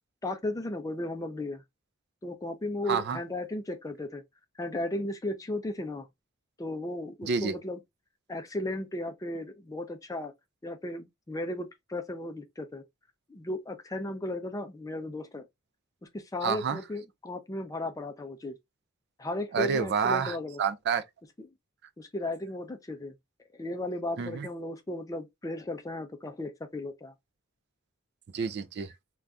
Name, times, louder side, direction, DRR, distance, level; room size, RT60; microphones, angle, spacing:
voice 1, 0.2-1.6 2.2-4.2 4.6-6.1 6.6-7.8 8.3-10.3 10.6-12.8 13.3-15.5 16.1-18.5 19.2-20.6 21.4-21.5 22.0-23.1 23.5-27.1, left 1 dB, 15° left, 0.4 m, -35 dB
voice 2, 2.9-3.2 7.2-7.6 16.4-16.8 19.5-21.0 24.2-24.5 28.3-28.9, right 6 dB, 50° right, 0.4 m, -29 dB
2.6 x 2.3 x 3.2 m
head